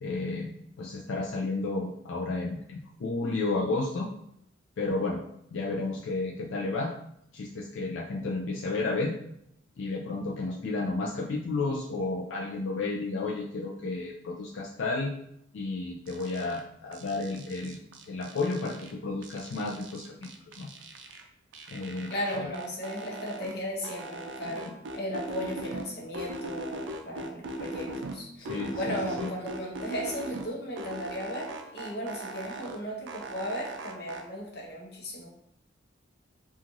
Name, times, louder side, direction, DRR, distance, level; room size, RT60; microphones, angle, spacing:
voice 1, 0.0-4.1 4.8-5.2 5.5-6.9 7.3-9.2 9.8-15.1 15.5-17.8 18.1-20.3 20.6-20.7 21.7-22.1 22.4-22.5 24.6-24.7 28.4-29.3, left 3 dB, 80° left, -2 dB, 0.4 m, -32 dB
sound 1, 16.1-16.6 16.9-18.9 19.2-21.2 21.5-23.5 23.8-25.9 26.1-28.2 28.5-30.5 30.8-32.8 33.1-34.2, right 1 dB, 75° right, 0.4 m, -39 dB
voice 2, 22.1-28.5 28.8-35.3, equal, 55° left, -2 dB, 0.7 m, -36 dB
3.0 x 2.4 x 2.5 m, 0.75 s
head